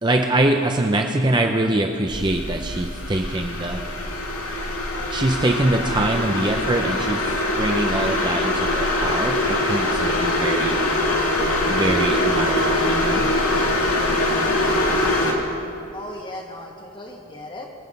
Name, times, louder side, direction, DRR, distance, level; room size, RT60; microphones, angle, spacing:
voice 1, 0.0-3.8 5.1-7.3 7.6-10.9 11.6-13.3, right 1 dB, 20° right, 3 dB, 0.6 m, -23 dB
sound 1, 2.1-15.3, left 1 dB, 75° left, 2.0 m, -23 dB
voice 2, 15.9-17.7, left 1 dB, 20° left, 1 dB, 1.5 m, -36 dB
24.0 x 8.1 x 5.3 m, 2.6 s
head